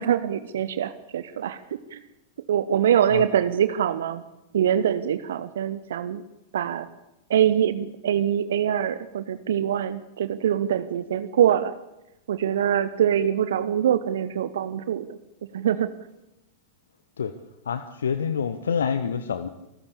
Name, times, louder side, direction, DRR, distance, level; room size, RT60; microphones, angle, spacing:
voice 1, 0.0-1.6 1.9-2.0 2.5-4.2 4.5-6.2 6.5-6.9 7.3-11.7 12.3-15.1 15.5-15.9, right 9 dB, 60° right, 14 dB, 0.9 m, -24 dB
voice 2, 17.7-19.5, left 7 dB, 70° left, 12 dB, 1.1 m, -27 dB
26.0 x 14.5 x 8.6 m, 0.94 s
figure-of-eight pair, 90°, 0 cm